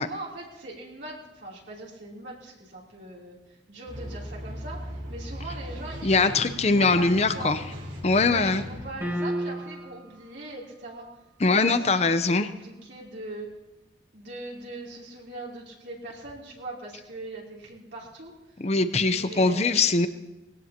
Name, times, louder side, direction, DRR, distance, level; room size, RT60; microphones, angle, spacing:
voice 1, 0.0-6.3 6.7-7.6 8.1-11.1 11.5-13.5 14.1-18.3 19.1-19.9, right 2 dB, 70° right, -5 dB, 3.3 m, -41 dB
sound 1, 3.9-8.9, equal, 85° right, 3.5 m, -38 dB
voice 2, 6.0-7.6 8.0-8.6 11.4-12.5 18.6-20.1, left 3 dB, 35° left, 10 dB, 0.7 m, -22 dB
sound 2, 9.0-10.1, equal, 15° right, 2.0 m, -30 dB
21.5 x 17.0 x 2.9 m, 1.0 s
head